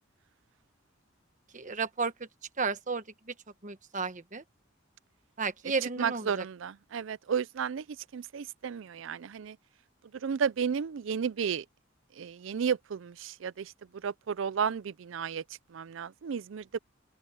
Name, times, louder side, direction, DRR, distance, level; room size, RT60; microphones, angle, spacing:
voice 1, 1.5-2.3 2.6-3.3 3.6-4.4 5.4-6.4, right 4 dB, 40° right, 1.2 m, -33 dB
voice 2, 6.0-9.6 10.1-11.7 12.1-15.4 15.7-16.8, right 7 dB, 70° right, 0.4 m, -33 dB
open air
head